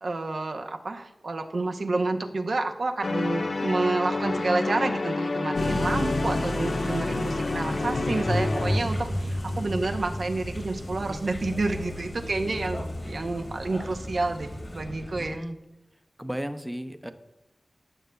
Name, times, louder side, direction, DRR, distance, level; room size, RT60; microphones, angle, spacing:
voice 1, 0.0-15.4, right 3 dB, 75° right, 5 dB, 0.7 m, -29 dB
sound 1, 3.0-8.8, left 3 dB, 60° left, 0.4 m, -29 dB
sound 2, 5.5-13.6, left 1 dB, 90° left, 0.9 m, -34 dB
sound 3, 7.9-15.4, left 1 dB, 40° left, 1.4 m, -33 dB
voice 2, 9.4-9.8 15.2-15.6 16.2-17.1, equal, 10° right, 9 dB, 0.6 m, -35 dB
14.5 x 6.6 x 2.3 m, 0.98 s
wide cardioid pair, 60°, 0 cm